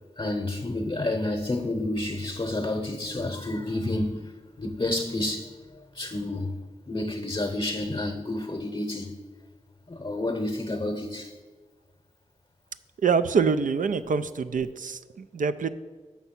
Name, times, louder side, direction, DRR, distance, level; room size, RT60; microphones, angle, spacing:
voice 1, 0.2-4.2 4.6-5.5 6.0-6.5 6.9-9.1 9.9-11.3, left 2 dB, 35° left, 0.8 m, -29 dB
voice 2, 13.0-15.7, right 5 dB, 75° right, 0.4 m, -25 dB
7.1 x 5.5 x 5.8 m
cardioid pair, 45°, 13 cm